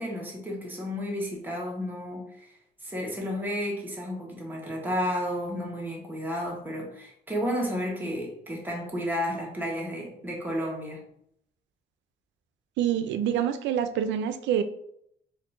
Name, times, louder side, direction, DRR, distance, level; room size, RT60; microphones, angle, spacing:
voice 1, 0.0-2.5 2.8-11.0, equal, 10° right, -2 dB, 1.1 m, -32 dB
voice 2, 12.8-14.6, right 9 dB, 85° right, 10 dB, 0.4 m, -26 dB
4.1 x 2.5 x 3.1 m, 0.72 s
cardioid pair, 120°, 18 cm